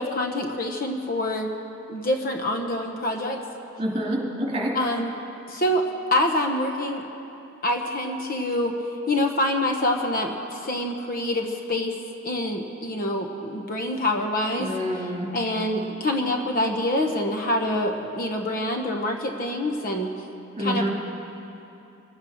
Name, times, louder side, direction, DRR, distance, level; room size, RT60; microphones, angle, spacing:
voice 1, 0.0-1.5 1.9-3.4 4.7-5.1 5.5-5.9 6.1-7.0 7.6-8.7 9.1-12.0 12.2-14.7 15.2-20.1 20.6-20.9, left 1 dB, 45° left, 3 dB, 1.0 m, -26 dB
voice 2, 3.8-4.7 14.6-15.3 20.6-20.9, equal, 30° right, -3 dB, 2.8 m, -27 dB
24.0 x 8.9 x 6.6 m, 2.9 s
head